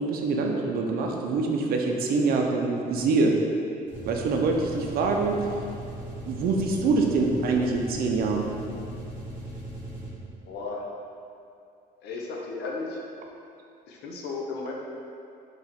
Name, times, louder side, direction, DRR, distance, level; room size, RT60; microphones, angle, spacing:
voice 1, 0.0-3.3 4.1-5.4 6.2-8.5, right 3 dB, 60° right, 1 dB, 0.5 m, -25 dB
sound 1, 3.8-10.4, right 1 dB, 10° right, 1.3 m, -38 dB
voice 2, 10.4-10.9 12.0-13.0 13.9-14.7, left 3 dB, 75° left, -1 dB, 0.7 m, -34 dB
3.9 x 3.0 x 4.2 m, 2.5 s
cardioid pair, 110°, 17 cm